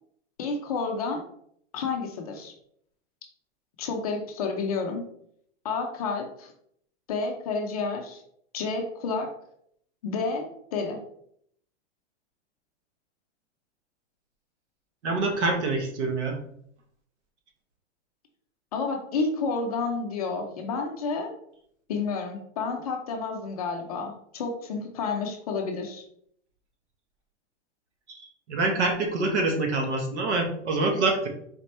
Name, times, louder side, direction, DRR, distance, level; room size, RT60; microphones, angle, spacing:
voice 1, 0.4-1.2 1.7-2.5 3.8-5.0 5.6-6.5 7.1-8.2 8.5-9.3 10.0-11.0 18.7-21.3 21.9-26.0, left 4 dB, 35° left, 3 dB, 0.4 m, -30 dB
voice 2, 15.0-16.4 28.5-31.3, right 3 dB, 70° right, 3 dB, 1.1 m, -25 dB
4.2 x 2.8 x 3.1 m, 0.68 s
supercardioid pair, 165°, 36 cm